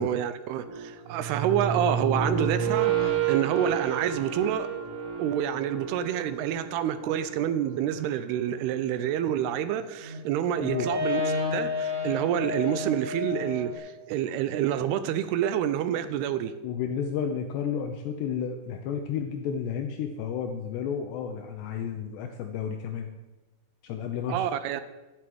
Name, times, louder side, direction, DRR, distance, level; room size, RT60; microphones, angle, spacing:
voice 1, 0.0-4.7 5.2-11.2 11.5-16.5 24.3-24.8, right 10 dB, 80° right, 2.4 m, -28 dB
sound 1, 0.6-8.7 9.7-13.8, right 3 dB, 55° right, 5.5 m, -30 dB
voice 2, 16.6-23.1 23.8-24.5, left 7 dB, 75° left, 2.9 m, -32 dB
12.0 x 8.0 x 9.4 m
omnidirectional pair, 5.1 m